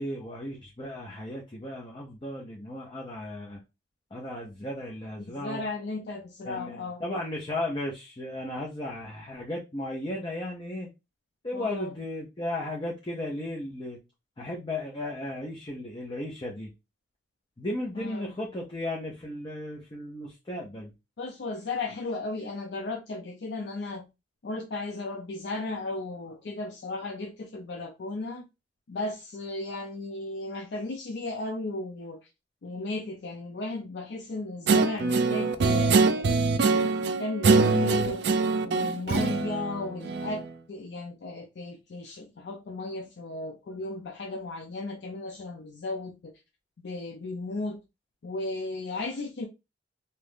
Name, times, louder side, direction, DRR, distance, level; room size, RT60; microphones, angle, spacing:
voice 1, 0.0-3.6 4.1-5.6 6.4-10.9 11.4-14.0 14.4-16.7 17.6-20.9, left 1 dB, 25° left, 0.6 m, -35 dB
voice 2, 5.3-7.0 11.5-12.0 17.9-18.3 21.2-24.1 24.4-28.5 28.9-32.3 32.6-38.2 38.6-40.4 40.7-46.3 46.8-47.8 48.2-49.5, left 2 dB, 70° left, 0.5 m, -35 dB
Guitar, 34.7-40.5, right 4 dB, 70° right, 0.4 m, -24 dB
2.8 x 2.4 x 3.5 m
head